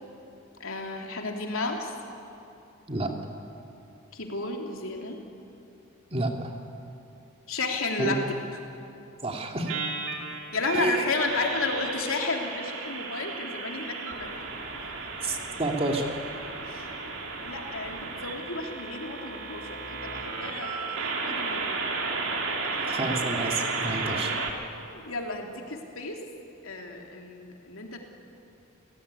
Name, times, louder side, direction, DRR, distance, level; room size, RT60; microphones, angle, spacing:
voice 1, 0.6-2.0 4.1-5.2 7.5-8.4 10.5-14.5 14.9-15.0 16.6-17.2 17.4-21.7 24.1-26.2 26.6-28.0, left 3 dB, 75° left, 2 dB, 3.2 m, -33 dB
voice 2, 6.1-6.6 8.0-8.1 9.2-9.7 10.7-11.0 15.2-16.2 22.8-24.3, right 2 dB, 30° right, 2 dB, 2.5 m, -29 dB
sound 1, 9.7-24.5, right 4 dB, 70° right, 2.9 m, -33 dB
30.0 x 16.5 x 9.9 m, 2.8 s
head